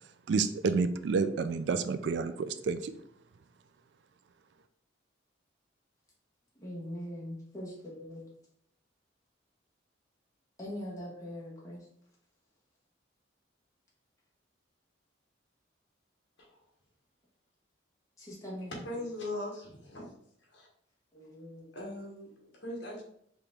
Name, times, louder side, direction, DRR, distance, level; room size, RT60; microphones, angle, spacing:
voice 1, 0.3-2.9, right 4 dB, 60° right, 11 dB, 0.3 m, -29 dB
voice 2, 6.6-8.2 10.6-11.8 18.2-18.7 21.1-21.7, equal, 15° left, -5 dB, 1.5 m, -42 dB
voice 3, 18.8-20.1 20.4-20.7 21.7-23.0, left 1 dB, 65° left, -1 dB, 1.4 m, -40 dB
4.9 x 3.0 x 3.4 m, 0.70 s
head